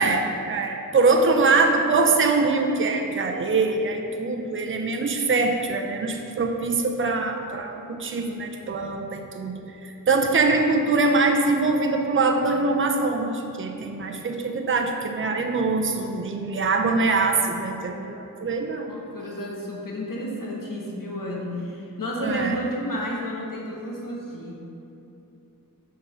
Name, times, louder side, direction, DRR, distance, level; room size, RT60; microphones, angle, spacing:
voice 1, 0.0-18.9 22.2-22.5, right 3 dB, 35° right, 3 dB, 0.6 m, -23 dB
voice 2, 18.9-24.5, equal, 70° left, -3 dB, 1.3 m, -31 dB
6.9 x 3.8 x 5.7 m, 2.9 s
wide cardioid pair, 60°, 34 cm